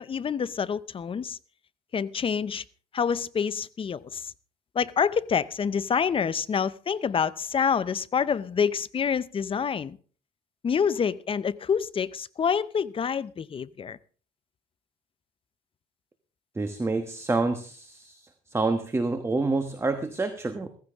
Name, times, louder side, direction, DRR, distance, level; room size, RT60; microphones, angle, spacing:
voice 1, 0.0-1.4 1.9-2.6 2.9-4.3 4.7-10.0 10.6-14.0, left 7 dB, 30° left, 0.7 m, -27 dB
voice 2, 16.5-20.7, right 3 dB, 15° right, 1.2 m, -28 dB
16.0 x 15.0 x 3.6 m
cardioid pair, 110°, 17 cm